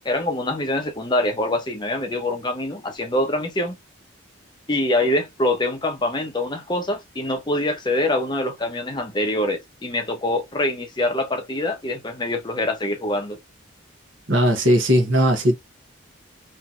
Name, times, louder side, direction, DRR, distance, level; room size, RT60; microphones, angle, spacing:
voice 1, 0.0-3.8 4.7-13.4, left 1 dB, 20° left, 0.6 m, -24 dB
voice 2, 14.3-15.5, equal, 65° right, 1.0 m, -18 dB
2.9 x 2.6 x 2.4 m
head